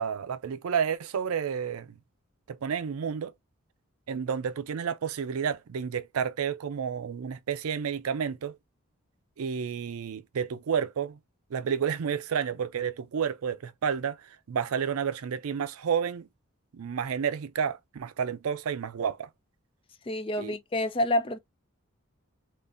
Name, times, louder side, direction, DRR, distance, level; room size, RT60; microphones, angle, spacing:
voice 1, 0.0-1.9 2.5-3.3 4.1-8.6 9.4-11.2 11.5-16.3 16.7-19.3 20.4-20.6, right 7 dB, 85° right, 0.4 m, -30 dB
voice 2, 20.1-21.4, left 1 dB, 25° left, 0.3 m, -28 dB
3.7 x 2.5 x 2.5 m
head